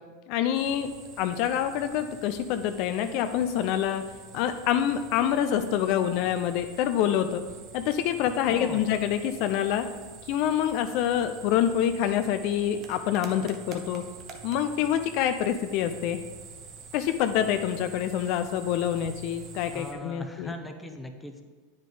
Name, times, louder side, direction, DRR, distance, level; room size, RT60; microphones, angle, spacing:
voice 1, 0.3-0.9 1.2-4.0 4.3-7.4 7.7-9.9 10.3-14.0 14.4-16.2 16.9-20.5, left 10 dB, 55° left, 9 dB, 0.4 m, -26 dB
sound 1, 0.5-19.9, right 5 dB, 40° right, 1.0 m, -47 dB
voice 2, 8.5-9.0 19.7-21.4, left 1 dB, 5° left, 5 dB, 0.8 m, -39 dB
8.9 x 5.1 x 3.9 m, 1.4 s
hypercardioid pair, 100°, 0 cm